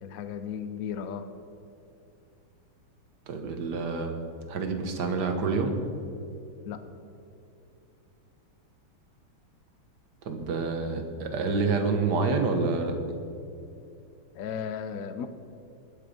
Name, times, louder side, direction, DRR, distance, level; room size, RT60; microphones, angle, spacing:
voice 1, 0.0-1.3 6.7-6.8 14.3-15.3, left 7 dB, 70° left, 9 dB, 0.8 m, -35 dB
voice 2, 3.3-4.1 4.5-5.7 10.2-12.9, right 4 dB, 55° right, 5 dB, 1.7 m, -27 dB
20.0 x 7.1 x 5.1 m, 2.6 s
omnidirectional pair, 2.2 m